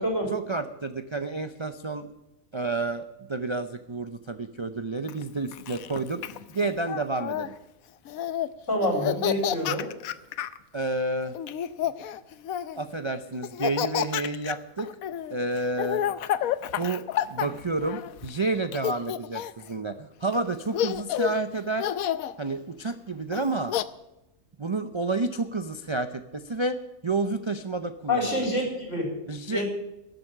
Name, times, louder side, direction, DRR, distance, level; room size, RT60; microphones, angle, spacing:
voice 1, 0.3-2.1 2.5-7.5 10.7-11.3 12.8-14.9 15.3-16.0 16.8-21.9 22.4-23.7 24.6-28.5 29.3-29.6, right 3 dB, 35° right, 9 dB, 0.5 m, -30 dB
Laughter, 5.1-7.5 8.1-8.5 8.8-10.6 11.4-12.9 13.4-18.3 18.7-19.7 20.3-20.4 20.7-21.4 21.8-22.3 23.3-23.8, left 11 dB, 85° left, 1.1 m, -30 dB
voice 2, 8.7-9.9 28.1-29.1 29.5-29.7, left 1 dB, 60° left, 1 dB, 4.6 m, -26 dB
13.0 x 8.0 x 10.0 m, 0.93 s
omnidirectional pair, 1.5 m